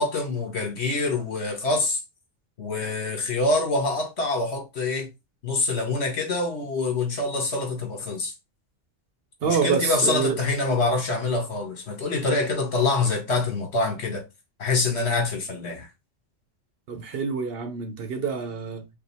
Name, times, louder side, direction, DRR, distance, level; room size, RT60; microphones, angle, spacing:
voice 1, 0.0-2.0 2.6-5.1 5.4-8.3 9.4-14.2 14.6-15.9, left 3 dB, 65° left, 1.6 m, -25 dB
voice 2, 9.4-10.4 16.9-18.9, right 6 dB, 60° right, 0.8 m, -27 dB
5.2 x 2.3 x 3.3 m
omnidirectional pair, 1.2 m